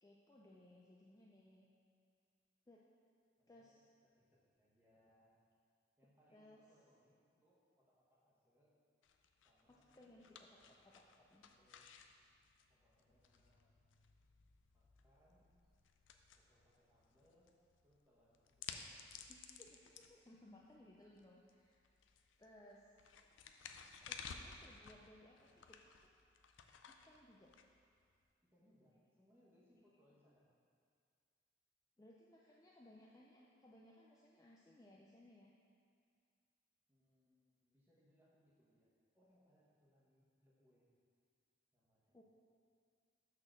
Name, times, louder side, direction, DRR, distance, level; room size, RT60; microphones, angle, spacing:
voice 1, 0.0-1.7 2.7-2.8 3.5-3.9 6.3-6.6 9.7-10.6 10.9-11.0 11.3-11.5 19.3-21.9 22.4-22.9 24.0-26.1 26.9-27.5 32.0-35.5 42.1-42.2, left 1 dB, 20° left, -3 dB, 0.4 m, -63 dB
voice 2, 3.4-5.4 6.0-8.8 9.4-10.1 10.5-12.0 12.7-13.7 14.7-15.5 16.4-17.5 17.8-19.1 28.4-30.5 36.9-40.9 41.7-42.2, equal, 10° right, -7 dB, 1.2 m, -74 dB
sound 1, 9.0-28.3, left 6 dB, 85° left, 0.4 m, -57 dB
6.4 x 3.9 x 6.2 m, 2.2 s
head